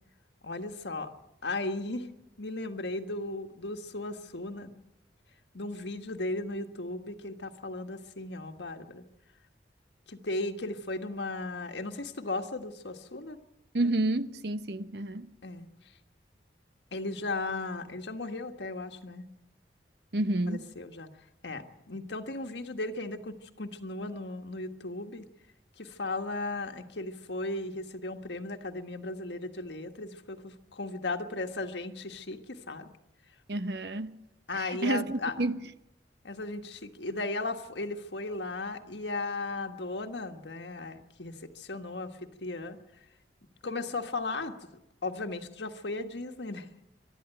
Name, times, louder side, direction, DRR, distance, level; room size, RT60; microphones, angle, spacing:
voice 1, 0.4-1.1 1.4-2.1 2.4-4.7 5.5-9.0 10.1-13.4 15.4-15.7 16.9-19.3 20.5-21.1 21.4-25.2 25.8-32.9 34.5-35.3 36.2-42.8 43.6-44.7 45.0-46.7, left 2 dB, 80° left, 1.5 m, -36 dB
voice 2, 13.7-15.3 20.1-20.6 33.5-34.2 34.5-35.7, right 2 dB, 65° right, 1.0 m, -30 dB
23.0 x 12.5 x 9.1 m
head